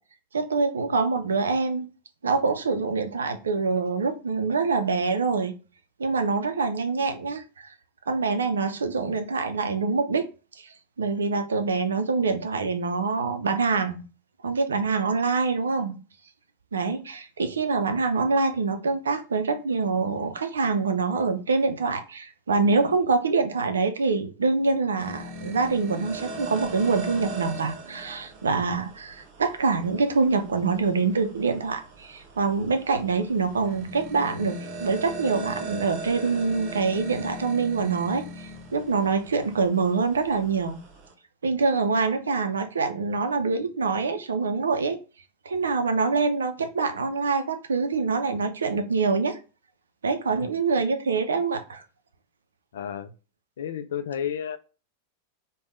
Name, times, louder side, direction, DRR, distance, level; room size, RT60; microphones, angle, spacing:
voice 1, 0.3-1.9 2.2-5.5 6.0-7.7 8.1-10.3 10.6-10.7 11.0-14.0 14.4-16.0 16.7-40.8 41.4-45.0 45.5-49.4 50.0-51.8, right 4 dB, 70° right, 0.5 m, -25 dB
sound 1, 25.0-41.1, right 1 dB, 45° right, 0.9 m, -39 dB
voice 2, 52.7-53.1 53.6-54.6, left 8 dB, 60° left, 0.3 m, -31 dB
3.4 x 2.2 x 3.4 m
figure-of-eight pair, 90°, 0 cm